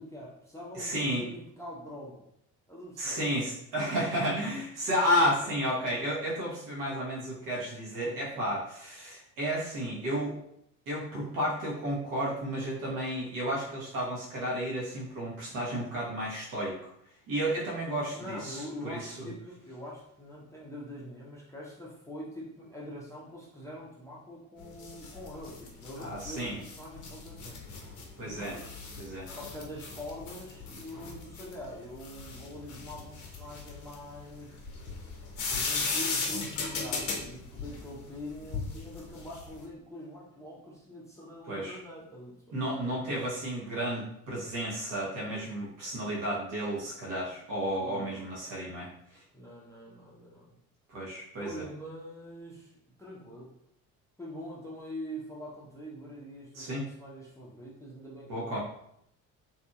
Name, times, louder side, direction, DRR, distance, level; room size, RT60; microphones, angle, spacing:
voice 1, 0.0-2.2 2.7-3.3 7.9-8.6 18.1-27.6 28.2-28.8 29.3-34.6 35.5-42.6 47.8-48.4 49.3-50.6 51.4-52.7 53.0-53.5 54.2-58.6, equal, 5° left, -5 dB, 0.7 m, -44 dB
voice 2, 0.7-1.3 3.0-10.3 10.9-16.8 17.3-19.3 26.0-26.6 28.2-28.5 29.0-29.3 41.5-41.8 42.5-49.2 50.9-51.6 56.5-56.8 58.3-58.6, equal, 50° right, -5 dB, 1.0 m, -32 dB
sound 1, 24.6-39.6, left 4 dB, 45° left, 0.8 m, -37 dB
2.8 x 2.6 x 2.3 m, 0.73 s
hypercardioid pair, 60°, 41 cm